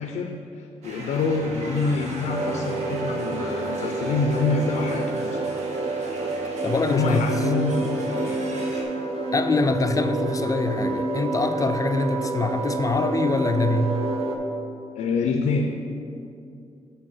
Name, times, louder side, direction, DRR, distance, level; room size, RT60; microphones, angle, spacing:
voice 1, 0.0-5.4 6.9-8.4 14.9-15.7, left 4 dB, 90° left, 4 dB, 0.5 m, -26 dB
sound 1, 0.8-8.8, right 1 dB, 70° right, 1.3 m, -38 dB
sound 2, 2.3-14.4, right 2 dB, 55° right, 0.8 m, -28 dB
voice 2, 6.6-7.3 9.3-14.0, left 3 dB, 30° left, 8 dB, 0.4 m, -24 dB
7.6 x 4.1 x 5.6 m, 2.6 s
cardioid pair, 95°, 12 cm